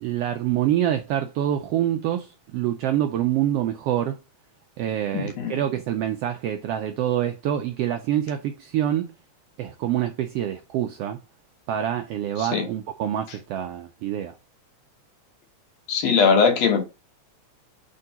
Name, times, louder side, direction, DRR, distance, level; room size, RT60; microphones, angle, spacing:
voice 1, 0.0-4.2 4.8-9.1 9.6-11.2 11.7-14.4, right 11 dB, 80° right, 1.4 m, -26 dB
voice 2, 5.1-5.6 12.4-12.6 15.9-16.8, left 5 dB, 65° left, 2.1 m, -20 dB
4.5 x 3.7 x 5.5 m
omnidirectional pair, 3.3 m